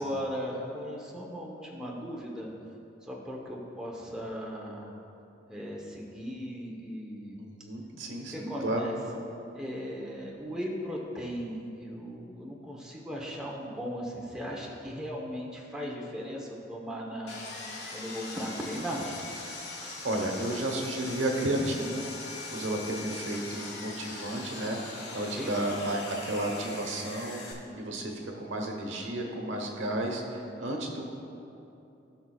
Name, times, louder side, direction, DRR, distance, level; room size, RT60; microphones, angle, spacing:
voice 1, 0.0-2.5 3.0-4.9 5.5-7.4 8.3-8.9 9.5-17.4 17.9-19.0 25.1-25.5, equal, 5° right, -4 dB, 1.0 m, -37 dB
voice 2, 7.4-8.9 19.7-22.0 22.5-31.0, right 1 dB, 85° right, 2 dB, 1.1 m, -32 dB
Sawing, 17.3-27.5, left 3 dB, 65° left, 1.6 m, -41 dB
17.0 x 5.9 x 2.4 m, 2.9 s
head